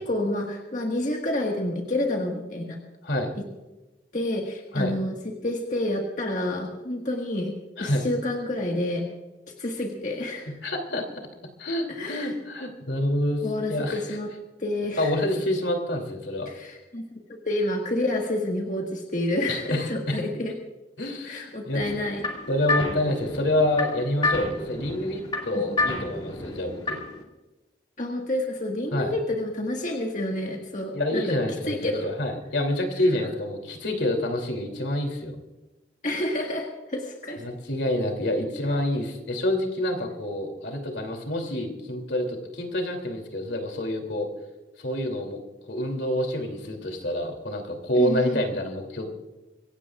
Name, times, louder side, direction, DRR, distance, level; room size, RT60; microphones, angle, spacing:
voice 1, 0.0-2.8 4.1-7.5 7.8-9.0 9.6-10.5 11.9-12.3 13.4-14.3 14.6-15.1 16.4-20.5 21.2-22.2 25.5-25.8 28.0-31.4 31.7-32.1 36.0-37.4 48.0-48.4, left 1 dB, 45° left, 1 dB, 1.6 m, -29 dB
voice 2, 10.6-11.0 11.6-14.0 15.0-16.5 19.5-20.2 21.0-21.8 22.5-27.0 28.9-29.1 30.9-35.4 37.4-44.3 44.8-45.4 45.7-49.1, left 1 dB, 80° left, 4 dB, 2.9 m, -27 dB
sound 1, 21.8-27.2, left 2 dB, 25° left, 2.2 m, -30 dB
25.5 x 16.5 x 2.4 m, 1.1 s
head